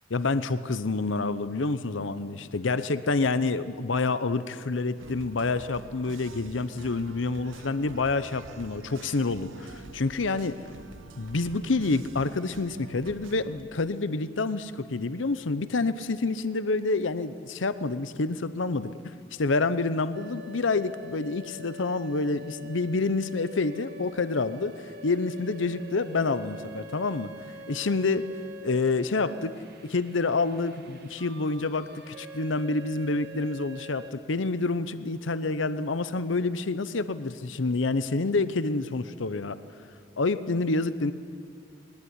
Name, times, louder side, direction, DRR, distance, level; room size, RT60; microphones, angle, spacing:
voice 1, 0.1-10.6 11.2-27.3 27.7-28.3 28.6-29.5 29.8-39.6 40.2-41.1, left 3 dB, 70° left, 13 dB, 0.8 m, -28 dB
sound 1, 5.0-13.6, right 3 dB, 80° right, 1.0 m, -47 dB
sound 2, 20.1-34.1, equal, 55° right, 1.7 m, -45 dB
20.5 x 19.0 x 9.9 m, 2.2 s
head